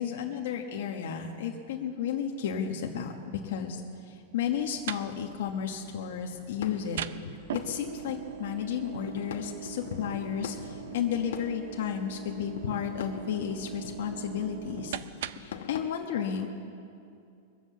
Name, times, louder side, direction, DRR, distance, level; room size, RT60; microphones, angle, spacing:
voice 1, 0.0-7.0 7.5-15.0 15.3-16.5, left 8 dB, 65° left, 1 dB, 1.2 m, -33 dB
sound 1, 4.4-15.6, right 11 dB, 70° right, 0.5 m, -42 dB
sound 2, 6.3-15.9, left 8 dB, 80° left, 1.0 m, -43 dB
23.0 x 7.8 x 7.4 m, 2.5 s
supercardioid pair, 175°, 0 cm